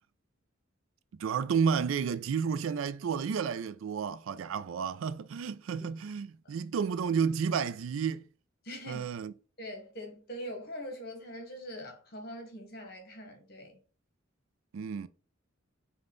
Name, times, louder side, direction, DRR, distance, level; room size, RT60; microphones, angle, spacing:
voice 1, 1.1-8.2 8.9-9.3 14.7-15.1, right 6 dB, 75° right, 0.3 m, -31 dB
voice 2, 8.6-9.1 9.6-13.8, equal, 50° left, 1.3 m, -43 dB
5.3 x 2.3 x 3.7 m
head